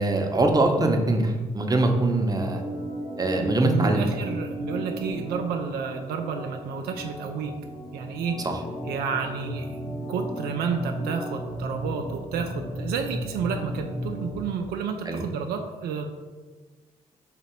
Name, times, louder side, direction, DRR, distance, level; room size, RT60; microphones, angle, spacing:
voice 1, 0.0-2.6 3.2-4.0 8.4-8.6 15.1-15.2, right 2 dB, 25° right, 3 dB, 0.7 m, -23 dB
Organ, 2.3-14.5, equal, 75° left, 1.1 m, -35 dB
voice 2, 3.6-7.5 7.9-8.4 8.9-9.8 10.1-16.1, right 6 dB, 75° right, 4 dB, 0.4 m, -30 dB
3.7 x 2.9 x 4.3 m, 1.4 s
supercardioid pair, 50°, 17 cm